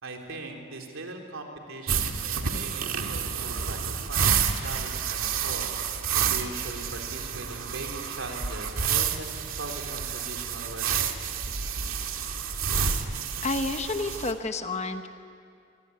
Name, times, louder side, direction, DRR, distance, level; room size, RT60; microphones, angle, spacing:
voice 1, 0.0-3.8 4.1-11.4, right 2 dB, 70° right, 2 dB, 3.9 m, -40 dB
sound 1, 1.9-14.3, right 7 dB, 85° right, 2.0 m, -29 dB
voice 2, 13.4-15.1, left 3 dB, 35° left, 7 dB, 1.2 m, -30 dB
26.0 x 23.5 x 9.6 m, 2.5 s
head